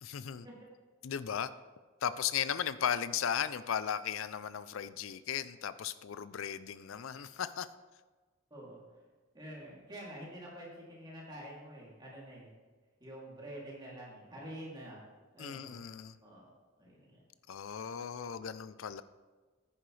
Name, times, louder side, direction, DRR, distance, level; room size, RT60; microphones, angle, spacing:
voice 1, 0.0-0.5 1.0-1.5 2.0-7.7 15.4-16.2 17.5-19.0, left 8 dB, 70° left, 14 dB, 0.4 m, -36 dB
voice 2, 9.3-12.5 13.0-15.0 15.3-15.8 16.2-16.5 16.8-17.2, right 1 dB, 20° right, -5 dB, 2.7 m, -47 dB
10.0 x 10.0 x 3.2 m, 1.3 s
head